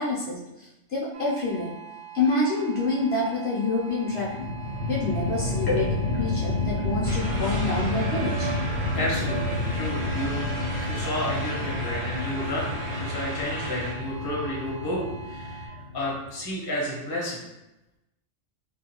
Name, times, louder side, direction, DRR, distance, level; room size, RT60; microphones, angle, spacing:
voice 1, 0.0-1.7 2.1-4.5 4.9-5.9 6.2-8.5, left 3 dB, 60° left, -6 dB, 0.8 m, -27 dB
sound 1, 1.1-15.7, right 10 dB, 85° right, 0.9 m, -43 dB
sound 2, 4.1-16.4, left 2 dB, 85° left, 0.9 m, -30 dB
voice 2, 5.7-6.1 8.9-17.4, left 1 dB, 25° left, -5 dB, 0.6 m, -31 dB
sound 3, 7.0-13.9, right 2 dB, 65° right, 1.0 m, -35 dB
2.4 x 2.3 x 2.8 m, 0.94 s
omnidirectional pair, 1.3 m